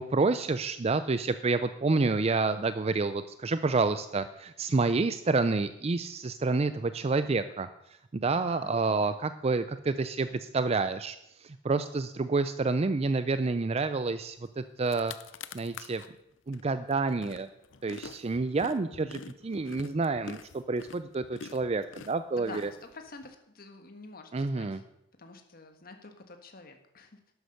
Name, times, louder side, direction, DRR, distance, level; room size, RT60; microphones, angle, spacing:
voice 1, 0.0-7.7 8.1-15.1 15.5-16.0 16.5-17.5 17.8-22.7 24.3-24.8, right 3 dB, 30° right, 12 dB, 0.4 m, -29 dB
voice 2, 8.3-9.2 22.4-24.8 25.2-27.2, left 3 dB, 50° left, 6 dB, 1.5 m, -48 dB
sound 1, 14.5-14.6 14.8-16.1 16.5-23.3, left 6 dB, 75° left, 0.7 m, -46 dB
12.0 x 9.5 x 6.5 m, 0.82 s
head